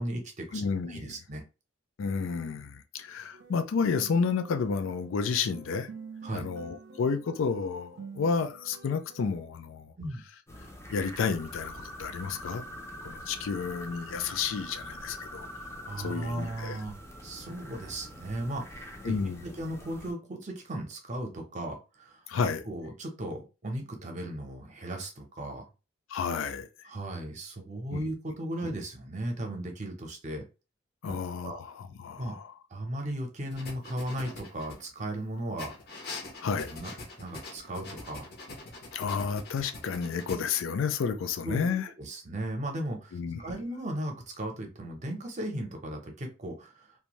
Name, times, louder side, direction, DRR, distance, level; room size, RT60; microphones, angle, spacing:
voice 1, 0.0-1.4 6.2-6.5 10.0-10.2 15.8-16.9 17.2-19.2 19.4-22.2 22.7-25.7 26.9-30.4 31.1-31.6 32.2-32.4 32.7-35.7 36.7-36.9 37.2-38.3 41.4-46.9, right 1 dB, 40° right, 0.7 m, -36 dB
voice 2, 0.5-1.2 2.0-5.9 6.3-9.9 10.9-12.6 13.0-15.5 16.0-16.8 19.0-19.4 22.3-22.7 26.1-26.9 27.9-28.0 31.0-32.5 36.4-36.7 38.9-41.9 43.1-43.5, left 5 dB, 90° left, 0.4 m, -31 dB
sound 1, 3.3-9.4, right 4 dB, 65° right, 0.4 m, -47 dB
sound 2, 10.5-20.1, equal, 15° left, 0.5 m, -44 dB
sound 3, 33.5-35.1 35.6-40.6, left 3 dB, 55° left, 0.7 m, -43 dB
2.6 x 2.2 x 3.0 m
head